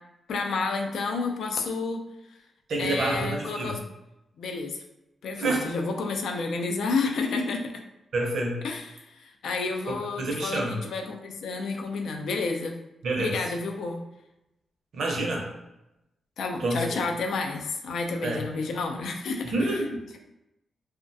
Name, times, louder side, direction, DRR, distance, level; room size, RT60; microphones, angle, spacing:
voice 1, 0.3-2.0 2.8-3.8 4.4-4.8 5.2-7.8 8.6-12.8 13.2-14.0 16.4-19.5, left 4 dB, 85° left, 3 dB, 0.3 m, -30 dB
voice 2, 2.7-3.8 5.4-5.7 8.1-8.6 9.9-10.8 13.0-13.4 14.9-15.5 16.6-17.0 18.2-18.4 19.4-20.1, right 2 dB, 70° right, 0 dB, 0.6 m, -28 dB
2.3 x 2.1 x 2.5 m, 0.91 s
wide cardioid pair, 120°, 0 cm